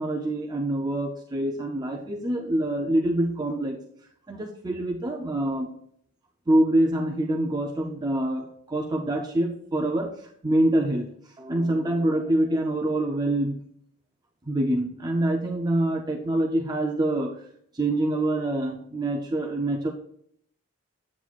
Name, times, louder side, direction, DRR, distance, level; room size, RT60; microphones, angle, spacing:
voice 1, 0.0-3.8 4.3-5.7 6.5-10.1 10.4-11.1 11.4-13.5 14.5-17.4 17.7-19.9, right 1 dB, 20° right, 1 dB, 0.5 m, -25 dB
8.4 x 7.7 x 2.4 m, 0.66 s
head